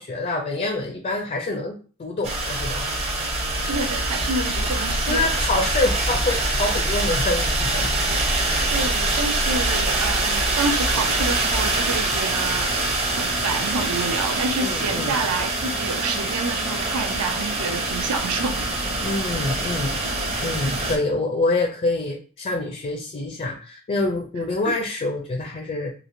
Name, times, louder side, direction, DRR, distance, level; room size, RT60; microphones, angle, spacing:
voice 1, 0.0-2.9 5.1-7.9 8.5-8.7 14.6-15.2 19.0-25.9, left 2 dB, 35° left, 2 dB, 0.4 m, -26 dB
sound 1, 2.2-21.0, right 2 dB, 30° right, 0.6 m, -24 dB
voice 2, 3.7-5.3 8.7-12.7 13.1-18.7, right 3 dB, 80° right, 6 dB, 0.5 m, -28 dB
3.1 x 2.4 x 2.5 m, 0.38 s
head